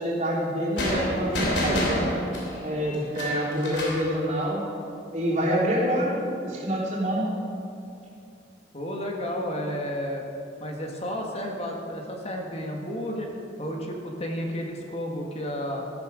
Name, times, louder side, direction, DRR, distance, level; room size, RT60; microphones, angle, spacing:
voice 1, 0.0-2.0 2.6-4.6 5.1-6.2 6.4-7.3, equal, 40° right, -6 dB, 3.5 m, -26 dB
sound 1, 0.8-4.1, equal, 65° left, 3.1 m, -28 dB
voice 2, 2.9-3.2 5.9-6.0 8.7-10.2 10.6-13.3 13.6-15.9, equal, 30° left, 1 dB, 1.6 m, -32 dB
13.0 x 12.5 x 5.0 m, 2.6 s
head